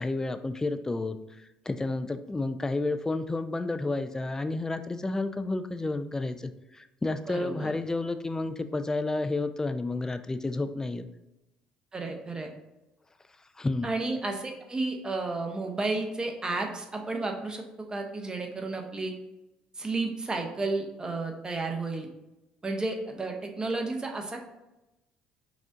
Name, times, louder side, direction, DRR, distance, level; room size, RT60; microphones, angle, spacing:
voice 1, 0.0-11.1 13.6-13.9, left 2 dB, 15° left, 9 dB, 0.4 m, -31 dB
voice 2, 7.3-7.7 11.9-12.5 13.8-17.6 17.9-19.1 19.8-22.1 22.6-24.4, right 3 dB, 25° right, 3 dB, 0.8 m, -32 dB
5.9 x 2.4 x 2.6 m, 0.95 s
hypercardioid pair, 55°, 3 cm